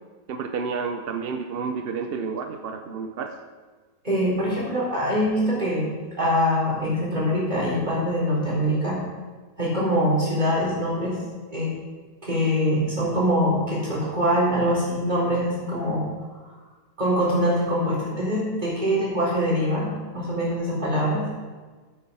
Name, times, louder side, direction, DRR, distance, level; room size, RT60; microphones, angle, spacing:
voice 1, 0.3-3.4, right 5 dB, 60° right, 6 dB, 0.6 m, -30 dB
voice 2, 4.0-9.0 9.6-11.2 11.5-11.7 12.2-16.0 16.4-16.5 17.0-21.3, equal, 25° right, -6 dB, 4.0 m, -24 dB
9.2 x 8.5 x 5.5 m, 1.4 s
omnidirectional pair, 1.7 m